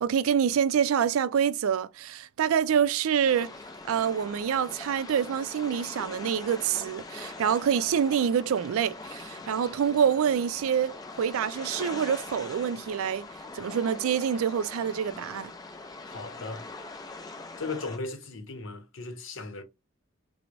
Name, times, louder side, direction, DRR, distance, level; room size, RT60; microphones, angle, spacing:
voice 1, 0.0-3.5 3.9-13.3 13.5-15.5, right 8 dB, 85° right, 0.3 m, -26 dB
sound 1, 3.2-18.0, left 3 dB, 20° left, 0.3 m, -42 dB
voice 2, 16.0-16.7 17.3-19.6, left 3 dB, 65° left, 0.7 m, -37 dB
4.5 x 2.0 x 2.5 m
head